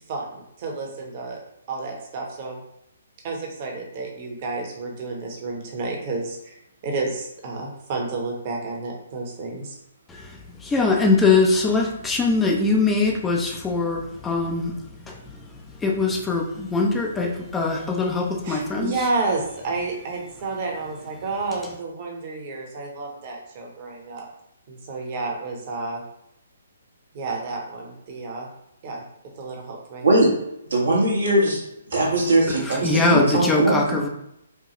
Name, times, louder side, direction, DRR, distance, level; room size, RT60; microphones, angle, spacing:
voice 1, 0.1-1.4 1.7-2.6 3.2-9.8 18.4-24.3 24.7-26.0 27.1-28.5 28.8-29.0 29.4-30.2 33.5-33.6, right 3 dB, 40° right, 0 dB, 1.1 m, -30 dB
voice 2, 10.1-19.1 32.5-34.1, left 3 dB, 10° left, 0 dB, 0.5 m, -22 dB
voice 3, 30.7-31.6 31.9-33.8, right 1 dB, 70° right, -1 dB, 1.2 m, -20 dB
4.6 x 2.3 x 3.0 m, 0.80 s
figure-of-eight pair, 130°, 0 cm